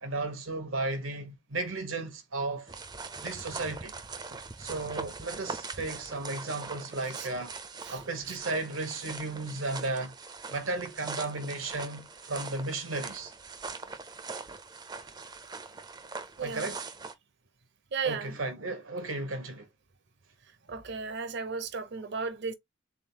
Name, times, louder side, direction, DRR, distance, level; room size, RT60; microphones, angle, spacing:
voice 1, 0.0-2.7 3.2-4.0 4.6-7.5 7.9-10.1 10.5-13.3 16.4-16.8 18.0-19.7, right 2 dB, 85° right, 1.2 m, -34 dB
sound 1, 2.7-17.1, right 4 dB, 20° right, 0.4 m, -42 dB
voice 2, 16.4-16.7 17.9-18.3 20.7-22.5, right 5 dB, 55° right, 0.7 m, -34 dB
3.8 x 3.6 x 2.8 m
head